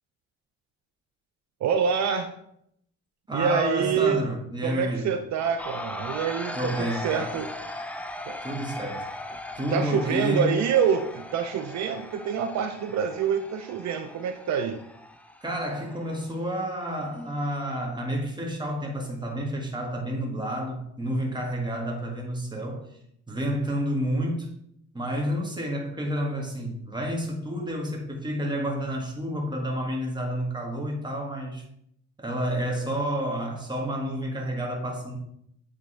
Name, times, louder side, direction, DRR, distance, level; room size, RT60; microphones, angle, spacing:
voice 1, 1.6-2.3 3.3-4.2 4.6-7.5 8.2-8.3 9.7-14.8, right 7 dB, 65° right, 7 dB, 0.6 m, -26 dB
voice 2, 3.3-5.2 6.5-7.4 8.4-9.1 9.6-10.6 15.4-22.9 23.3-24.6 24.9-31.6 32.2-35.2, equal, 15° right, 0 dB, 1.7 m, -30 dB
sound 1, 5.6-17.5, left 1 dB, 5° left, 0.5 m, -39 dB
8.3 x 3.6 x 3.2 m, 0.72 s
cardioid pair, 90°, 30 cm